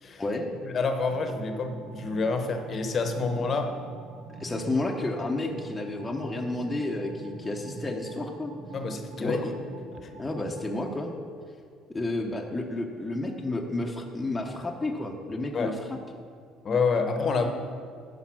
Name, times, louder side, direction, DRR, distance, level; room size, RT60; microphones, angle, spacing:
voice 1, 0.6-3.7 8.7-9.5 10.0-10.1 15.5-15.7 16.6-17.5, left 4 dB, 40° left, 6 dB, 0.9 m, -28 dB
sound 1, 1.1-10.8, right 4 dB, 65° right, 0.8 m, -44 dB
voice 2, 4.4-8.5 9.2-9.5 10.2-11.2 11.9-16.0, left 2 dB, 15° left, 0 dB, 0.8 m, -31 dB
10.0 x 5.3 x 6.1 m, 2.3 s
cardioid pair, 105°, 0 cm